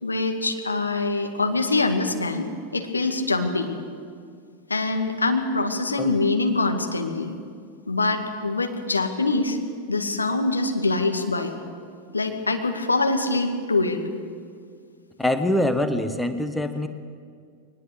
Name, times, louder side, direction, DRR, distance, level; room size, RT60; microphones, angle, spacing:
voice 1, 0.0-3.7 4.7-7.4 7.9-9.6 9.9-11.5 12.1-14.0, left 3 dB, 80° left, 5 dB, 2.0 m, -24 dB
voice 2, 15.2-16.9, left 1 dB, 5° left, 8 dB, 1.3 m, -24 dB
22.0 x 19.5 x 8.3 m, 2.1 s
figure-of-eight pair, 90°, 0 cm